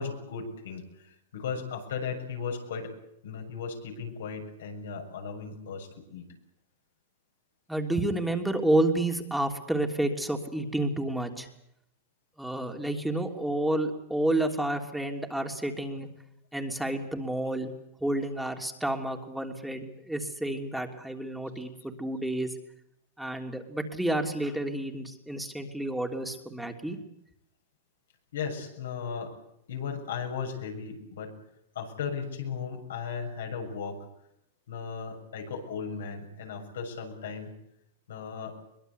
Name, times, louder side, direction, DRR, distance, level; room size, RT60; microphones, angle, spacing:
voice 1, 0.0-2.9 3.2-6.3 16.0-16.1 28.3-29.3 29.7-31.3 31.7-34.0 34.7-37.5 38.1-38.6, left 6 dB, 80° left, 2 dB, 6.8 m, -36 dB
voice 2, 7.7-11.5 12.4-16.1 16.5-17.7 18.0-22.5 23.2-27.0, right 1 dB, 5° right, 4 dB, 3.2 m, -30 dB
23.0 x 21.5 x 8.4 m, 0.78 s
hypercardioid pair, 105°, 0 cm